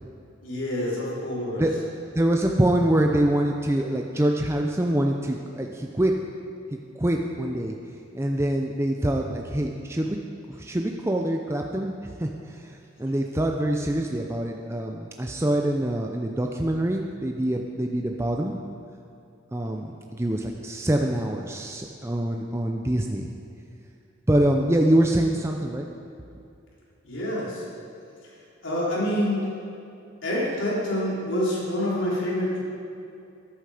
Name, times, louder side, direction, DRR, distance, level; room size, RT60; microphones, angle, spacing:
voice 1, 0.4-1.6 27.0-27.6 28.6-29.5 30.2-32.6, left 1 dB, 80° left, -5 dB, 3.8 m, -27 dB
voice 2, 2.1-6.1 7.0-7.7 8.1-10.2 10.5-18.6 19.5-23.3 24.3-25.9, right 1 dB, 15° right, 1 dB, 0.6 m, -25 dB
14.0 x 11.5 x 5.0 m, 2.6 s
head